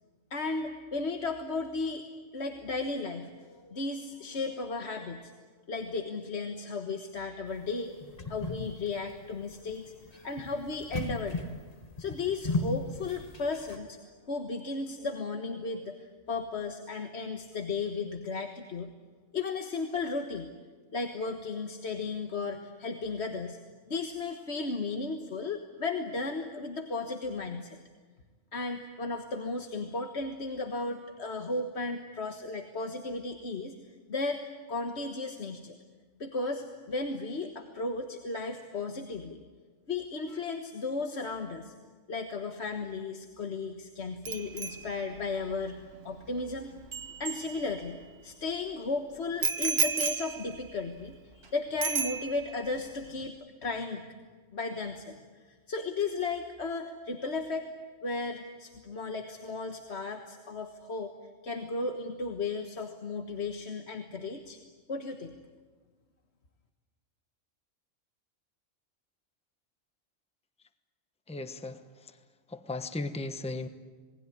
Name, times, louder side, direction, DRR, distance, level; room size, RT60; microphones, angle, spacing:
voice 1, 0.3-2.0 2.3-5.3 5.7-9.9 10.2-11.5 12.0-18.9 19.3-20.5 20.9-23.6 23.9-27.8 28.5-33.7 34.1-35.8 36.2-39.4 39.9-41.7 42.1-46.7 47.2-54.1 54.5-57.7 58.0-61.1 61.4-64.6 64.9-65.3, left 3 dB, 55° left, 5 dB, 1.7 m, -35 dB
sound 1, 7.5-13.8, left 3 dB, 30° left, 1.9 m, -36 dB
Bicycle bell, 44.2-48.1 49.4-51.5 51.8-52.7 53.0-53.2, right 5 dB, 55° right, 1.3 m, -34 dB
voice 2, 71.3-72.2 72.5-73.7, left 2 dB, 5° left, 9 dB, 1.0 m, -37 dB
27.5 x 20.0 x 9.9 m, 1.5 s
omnidirectional pair, 1.3 m